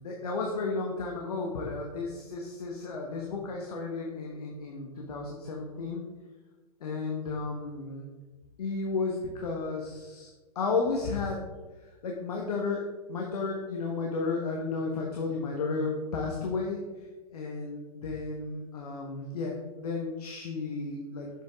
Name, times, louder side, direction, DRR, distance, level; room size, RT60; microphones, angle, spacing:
voice 1, 0.0-6.0 6.8-8.0 8.6-10.3 10.5-11.4 12.0-12.8 13.1-16.8 17.3-21.3, left 4 dB, 75° left, 0 dB, 1.2 m, -33 dB
7.3 x 5.0 x 3.5 m, 1.3 s
hypercardioid pair, 125°, 20 cm